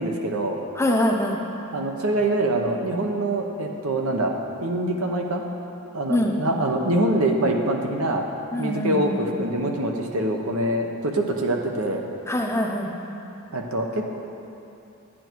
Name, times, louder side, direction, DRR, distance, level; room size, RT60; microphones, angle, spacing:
voice 1, 0.0-0.6 1.7-4.3 4.6-5.4 5.9-8.2 8.6-12.0 13.5-14.2, right 1 dB, 80° right, 2 dB, 1.0 m, -24 dB
voice 2, 0.7-1.4 6.1-6.3 8.5-9.2 12.3-12.9, left 1 dB, 10° left, 0 dB, 0.7 m, -23 dB
10.5 x 8.9 x 4.6 m, 2.8 s
head